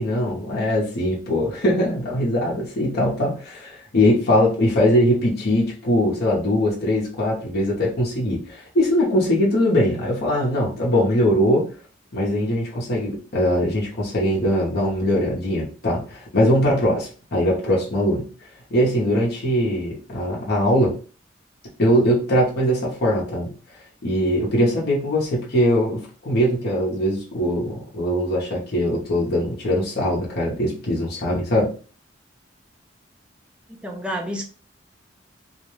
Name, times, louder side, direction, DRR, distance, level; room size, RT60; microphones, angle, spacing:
voice 1, 0.0-11.7 12.1-18.3 18.7-21.0 21.8-23.5 24.0-31.7, equal, 55° left, -4 dB, 0.7 m, -21 dB
voice 2, 33.7-34.4, equal, 5° right, 1 dB, 0.4 m, -29 dB
2.3 x 2.1 x 3.0 m, 0.38 s
head